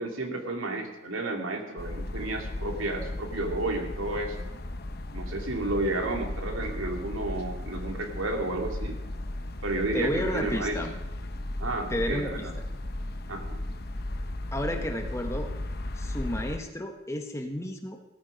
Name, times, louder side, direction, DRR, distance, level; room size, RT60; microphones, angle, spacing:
voice 1, 0.0-4.4 5.1-9.0 9.6-10.8 11.6-12.5 13.3-13.6, right 2 dB, 85° right, 3 dB, 2.6 m, -32 dB
sound 1, 1.8-16.6, left 1 dB, 50° left, 0.9 m, -35 dB
voice 2, 9.9-10.9 11.9-12.5 14.5-15.5 16.0-18.0, equal, 15° left, 4 dB, 1.3 m, -32 dB
17.0 x 14.0 x 5.2 m, 0.97 s
head